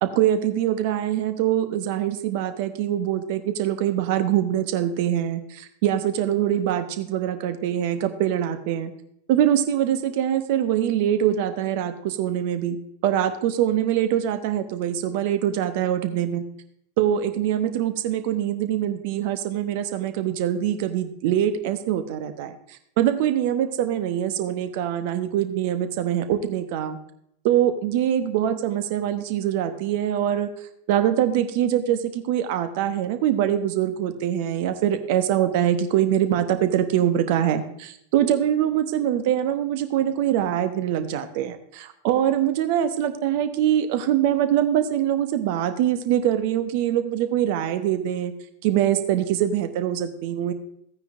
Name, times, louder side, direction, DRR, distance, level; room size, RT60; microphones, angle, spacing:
voice 1, 0.0-8.9 9.3-12.8 13.0-16.4 17.0-22.5 23.0-27.0 27.4-30.5 30.9-48.3 48.6-50.5, right 11 dB, 50° right, 10 dB, 0.9 m, -23 dB
15.0 x 9.4 x 2.6 m, 0.72 s
figure-of-eight pair, 90°, 0 cm